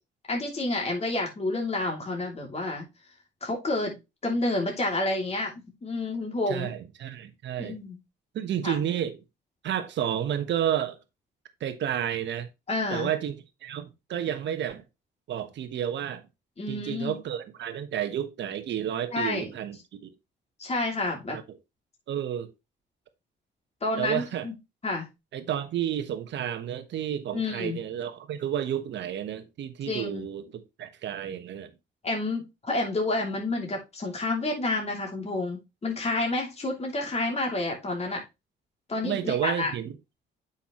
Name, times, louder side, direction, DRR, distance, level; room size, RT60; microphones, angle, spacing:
voice 1, 0.3-2.9 3.4-3.9 4.2-5.5 5.8-6.7 7.6-8.0 8.6-8.8 12.7-13.1 16.6-17.1 19.1-19.5 20.6-21.4 23.8-24.5 24.8-25.1 27.3-27.8 29.9-30.2 32.0-38.2 38.9-39.7, left 2 dB, 30° left, 2.9 m, -29 dB
voice 2, 6.5-7.8 8.3-9.2 9.6-11.0 11.6-12.5 12.9-14.8 15.3-16.2 16.7-20.1 21.3-21.6 22.1-22.5 24.0-24.5 25.3-31.7 39.0-40.0, right 10 dB, 65° right, 1.2 m, -31 dB
8.8 x 5.6 x 3.1 m
supercardioid pair, 70°, 20 cm